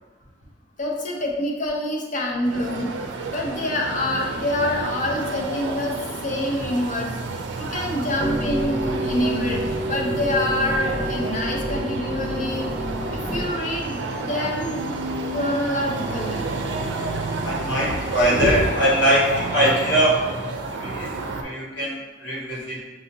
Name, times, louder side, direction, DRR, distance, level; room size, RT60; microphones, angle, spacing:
voice 1, 0.8-2.9 3.3-5.9 6.2-7.1 7.6-12.7 13.1-14.9 15.3-16.5, left 1 dB, 45° left, -1 dB, 0.7 m, -26 dB
sound 1, 2.4-21.4, right 3 dB, 75° right, 0.4 m, -31 dB
sound 2, 8.2-13.5, right 1 dB, 5° right, 0.4 m, -29 dB
voice 2, 17.4-20.4 20.7-22.8, equal, 70° left, -5 dB, 1.1 m, -22 dB
5.5 x 2.6 x 2.7 m, 1.2 s
head